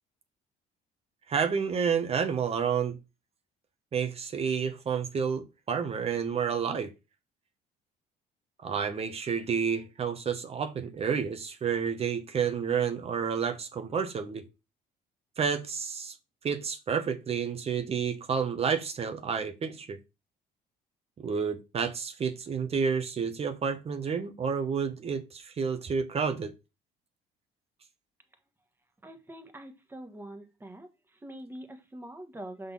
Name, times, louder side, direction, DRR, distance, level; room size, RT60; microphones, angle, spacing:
voice 1, 1.3-3.0 3.9-6.9 8.6-14.4 15.4-16.1 16.4-20.0 21.2-26.5, right 6 dB, 35° right, 1.0 m, -30 dB
voice 2, 29.0-30.9 31.2-32.7, right 1 dB, 15° right, 1.3 m, -44 dB
5.7 x 4.0 x 5.4 m
cardioid pair, 110°, 17 cm